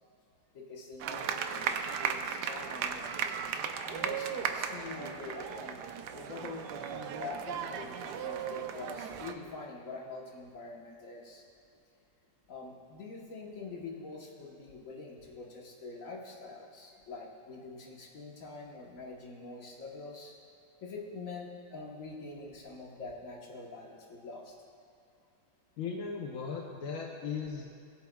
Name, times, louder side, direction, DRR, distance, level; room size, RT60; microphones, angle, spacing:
voice 1, 0.5-3.2 3.9-5.8 6.1-11.4 12.5-20.3 20.8-24.5, left 3 dB, 45° left, -1 dB, 1.4 m, -45 dB
sound 1, 1.0-9.3, right 7 dB, 70° right, 1.0 m, -36 dB
voice 2, 25.8-27.8, left 5 dB, 60° left, 0 dB, 0.9 m, -37 dB
20.0 x 7.9 x 2.3 m, 2.6 s
omnidirectional pair, 2.1 m